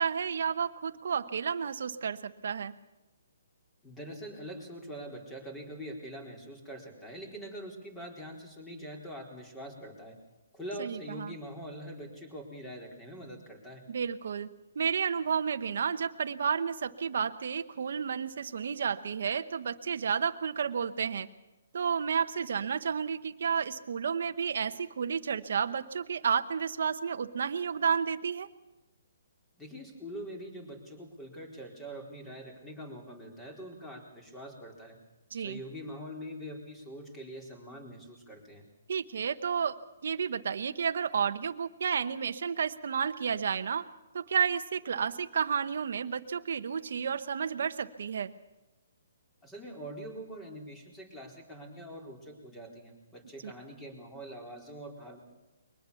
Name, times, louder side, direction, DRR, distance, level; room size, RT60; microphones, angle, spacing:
voice 1, 0.0-2.7 10.8-11.4 13.9-21.3 21.7-28.5 35.3-35.6 38.9-39.8 40.0-43.9 44.1-48.3 53.4-53.5, right 6 dB, 65° right, 9 dB, 1.0 m, -31 dB
voice 2, 3.8-10.2 10.5-13.8 29.6-35.0 35.3-38.6 49.4-55.2, equal, 10° left, 2 dB, 4.3 m, -44 dB
22.5 x 19.5 x 7.1 m, 1.0 s
hypercardioid pair, 155°, 0 cm